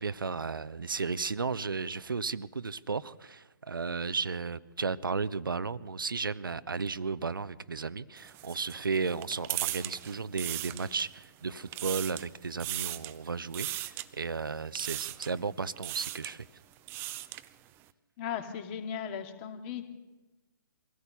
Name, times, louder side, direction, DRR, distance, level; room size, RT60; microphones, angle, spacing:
voice 1, 0.0-16.5, right 4 dB, 75° right, 0.8 m, -34 dB
sound 1, 8.2-11.2 11.6-12.3 12.6-13.2 13.5-14.1 14.7-15.4 15.8-16.3 16.7-17.5, right 16 dB, 20° right, 0.7 m, -37 dB
voice 2, 18.2-19.8, left 8 dB, 30° left, 2.4 m, -37 dB
24.0 x 16.0 x 7.0 m
figure-of-eight pair, 130°, 11 cm